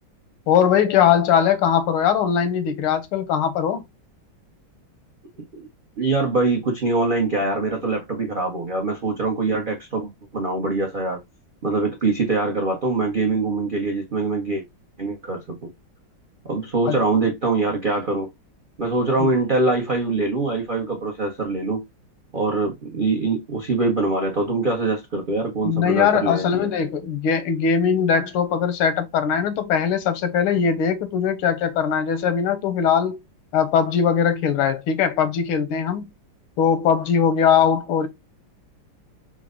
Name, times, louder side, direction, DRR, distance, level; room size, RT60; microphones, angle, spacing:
voice 1, 0.5-3.8 16.9-17.0 19.2-19.3 25.6-33.2 33.5-36.1 36.6-38.1, left 7 dB, 85° left, 1.6 m, -20 dB
voice 2, 6.0-11.2 11.6-14.6 15.0-15.7 16.4-18.3 18.8-21.8 22.3-26.7, right 3 dB, 90° right, 0.4 m, -23 dB
4.6 x 2.1 x 3.6 m
omnidirectional pair, 2.3 m